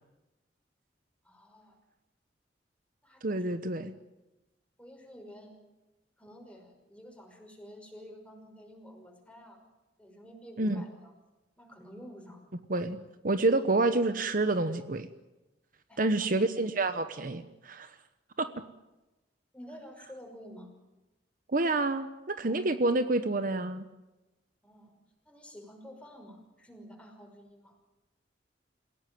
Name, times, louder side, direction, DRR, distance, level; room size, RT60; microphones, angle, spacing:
voice 1, 1.2-1.8 3.0-3.5 4.8-5.6 6.2-9.6 10.0-11.1 11.6-12.4 15.9-16.3 19.5-20.7 24.6-25.0 25.3-27.7, equal, 5° left, 2 dB, 5.7 m, -50 dB
voice 2, 3.2-3.9 10.6-10.8 12.7-13.0 13.2-15.1 16.0-17.9 18.4-18.6 21.5-23.8, right 2 dB, 50° right, 10 dB, 1.1 m, -28 dB
28.0 x 17.0 x 9.3 m, 1.0 s
head